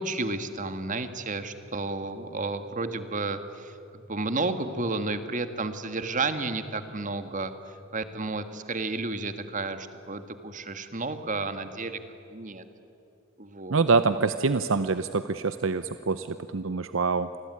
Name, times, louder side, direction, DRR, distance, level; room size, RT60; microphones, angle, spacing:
voice 1, 0.0-7.5 7.9-12.0 12.3-12.6 13.4-13.8, right 3 dB, 40° right, 9 dB, 1.7 m, -32 dB
voice 2, 13.7-17.3, right 4 dB, 70° right, 11 dB, 0.7 m, -25 dB
28.0 x 20.5 x 9.8 m, 2.9 s
head